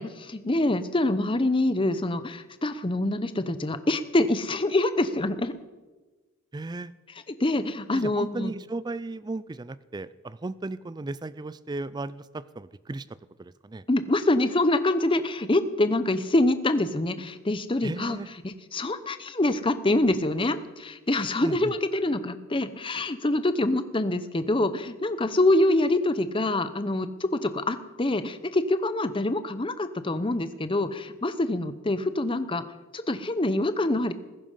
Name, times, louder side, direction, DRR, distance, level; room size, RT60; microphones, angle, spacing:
voice 1, 0.0-5.5 7.4-8.5 13.9-18.2 18.4-32.6 32.9-34.1, left 2 dB, 25° left, 12 dB, 0.7 m, -25 dB
voice 2, 6.5-6.9 7.9-13.8 17.8-18.3 21.4-21.7, right 2 dB, 20° right, 17 dB, 0.3 m, -35 dB
19.5 x 10.5 x 5.6 m, 1.2 s
head